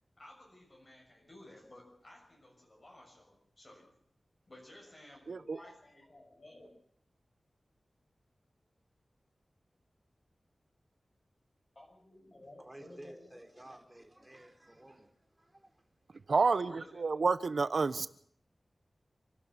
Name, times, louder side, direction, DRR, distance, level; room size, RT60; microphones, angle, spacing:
voice 1, 0.2-4.0 4.5-6.7 11.7-13.4 16.6-17.3, left 1 dB, 45° left, 0 dB, 6.6 m, -55 dB
voice 2, 5.3-5.6 16.3-18.1, right 4 dB, 75° right, 13 dB, 1.0 m, -29 dB
voice 3, 12.6-16.2, right 1 dB, 15° right, 4 dB, 4.2 m, -54 dB
27.5 x 12.0 x 8.1 m, 0.65 s
wide cardioid pair, 70°, 0 cm